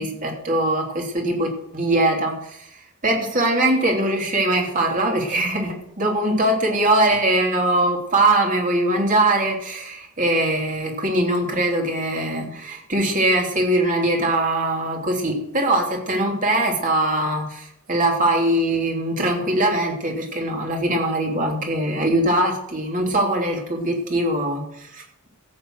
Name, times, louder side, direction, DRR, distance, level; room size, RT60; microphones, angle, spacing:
voice 1, 0.0-2.7 3.0-25.3, right 1 dB, 35° right, 1 dB, 3.2 m, -22 dB
15.0 x 8.7 x 6.3 m, 0.75 s
head